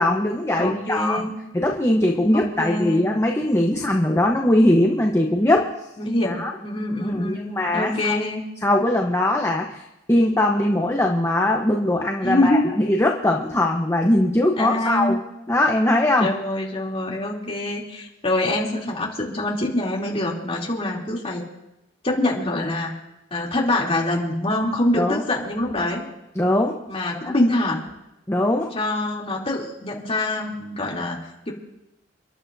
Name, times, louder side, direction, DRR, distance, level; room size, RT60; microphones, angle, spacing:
voice 1, 0.0-1.3 1.5-5.7 6.2-6.5 7.0-8.2 8.6-9.8 10.1-15.2 15.5-16.3 25.0-25.2 26.4-26.8 27.2-27.3 28.3-28.7, left 1 dB, 15° left, 0 dB, 1.0 m, -20 dB
voice 2, 0.6-1.5 2.3-3.0 3.5-3.6 6.0-8.4 12.2-12.7 14.6-15.3 16.2-21.4 22.0-22.9 23.3-26.0 26.9-27.8 28.7-31.2 31.5-31.6, left 1 dB, 30° left, -3 dB, 3.0 m, -25 dB
29.5 x 11.5 x 2.7 m, 0.92 s
head